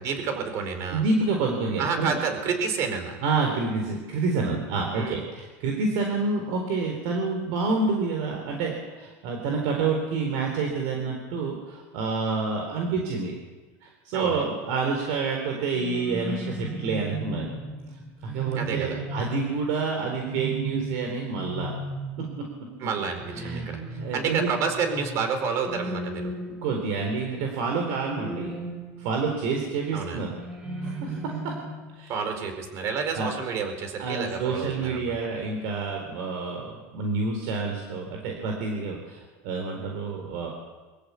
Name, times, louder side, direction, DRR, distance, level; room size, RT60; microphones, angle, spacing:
voice 1, 0.0-1.0 1.8-3.2 4.9-5.2 14.1-14.5 18.5-19.0 22.8-23.8 24.1-26.3 29.9-30.2 32.1-35.1, right 5 dB, 45° right, 6 dB, 4.5 m, -29 dB
voice 2, 0.9-2.2 3.2-13.3 13.8-17.6 18.2-21.7 22.2-22.5 23.3-23.7 24.0-24.5 26.6-28.6 29.0-30.4 30.8-31.5 32.0-32.3 33.1-33.3 34.0-40.5, right 4 dB, 65° right, 1 dB, 4.1 m, -28 dB
sound 1, 15.7-27.3 28.1-29.4 30.4-31.9, right 2 dB, 10° right, 3.3 m, -36 dB
23.5 x 15.5 x 8.4 m, 1.3 s
supercardioid pair, 150°, 7 cm